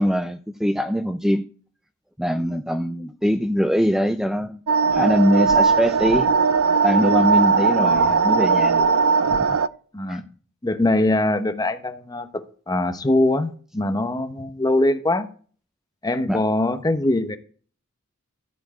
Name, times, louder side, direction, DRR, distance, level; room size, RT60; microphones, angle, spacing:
voice 1, 0.0-1.4 2.2-4.6 4.9-6.3 6.8-9.0 10.1-10.2 16.3-16.4, equal, ahead, 0.5 m, -22 dB
sound 1, 4.7-9.7, right 5 dB, 70° right, 0.4 m, -18 dB
voice 2, 10.6-15.3 16.0-17.4, left 2 dB, 20° left, 0.9 m, -22 dB
13.5 x 4.5 x 8.3 m
head